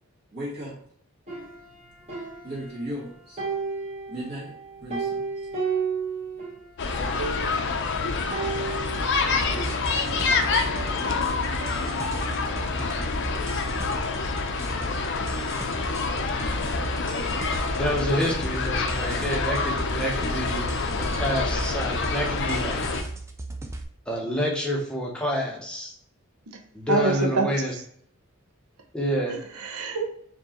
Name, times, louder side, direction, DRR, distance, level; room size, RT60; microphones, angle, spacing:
voice 1, 0.3-0.8 2.4-3.4 4.1-5.5, right 1 dB, 45° right, 1.7 m, -36 dB
sound 1, 1.3-3.0 3.4-6.7 6.9-7.0 7.2-7.8 8.3-10.3 10.7-12.4, right 5 dB, 30° right, 1.2 m, -34 dB
sound 2, 6.8-23.0, left 4 dB, 55° left, 0.5 m, -27 dB
sound 3, 9.4-23.8, right 2 dB, 15° right, 0.3 m, -37 dB
voice 2, 17.8-22.8 24.1-25.9 26.7-27.7 28.9-29.4, equal, 5° left, 0.8 m, -28 dB
voice 3, 26.9-27.8 29.3-30.1, right 2 dB, 85° right, 0.7 m, -27 dB
4.4 x 2.8 x 2.9 m
head